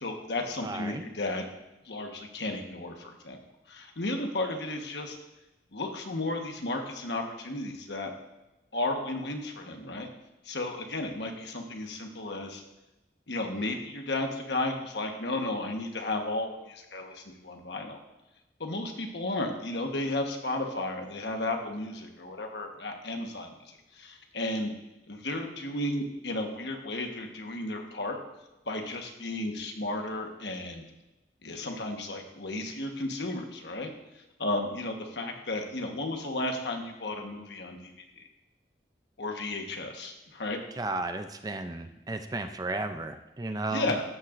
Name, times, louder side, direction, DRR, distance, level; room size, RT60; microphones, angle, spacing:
voice 1, 0.0-1.5 1.8-3.4 3.7-5.2 5.7-8.1 8.7-10.1 10.4-12.6 13.3-18.0 18.6-24.7 25.1-28.2 28.7-30.8 31.4-33.9 34.4-38.3 39.2-40.6 43.7-44.0, left 2 dB, 80° left, 3 dB, 1.3 m, -33 dB
voice 2, 0.6-1.1 40.8-43.9, right 2 dB, 20° right, 8 dB, 0.4 m, -34 dB
13.5 x 8.8 x 2.6 m, 0.99 s
head